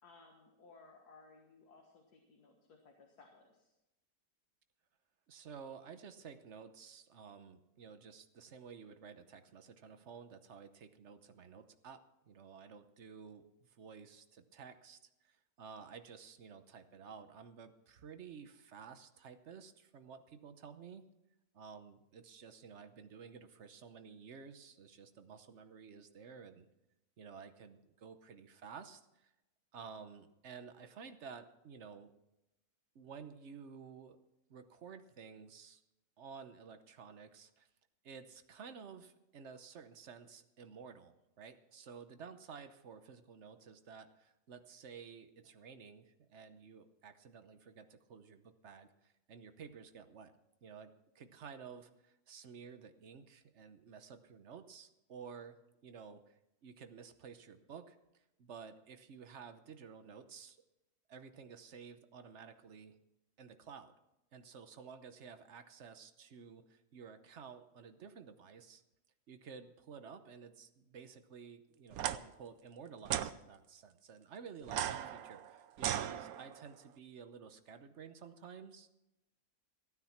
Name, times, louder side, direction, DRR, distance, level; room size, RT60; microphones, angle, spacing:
voice 1, 0.0-3.7, left 3 dB, 75° left, 1 dB, 2.1 m, -61 dB
voice 2, 5.3-12.0 12.3-21.0 21.5-26.7 27.2-29.3 29.7-32.1 32.9-34.2 34.5-35.8 36.2-37.7 38.0-50.3 50.6-55.6 55.8-60.6 61.1-63.0 63.4-63.9 64.3-68.8 69.3-78.9, right 6 dB, 50° right, 9 dB, 1.1 m, -53 dB
sound 1, 71.9-72.2 73.1-73.3 74.6-76.7, right 11 dB, 70° right, 1.0 m, -37 dB
15.5 x 9.7 x 5.8 m, 0.94 s
omnidirectional pair, 1.7 m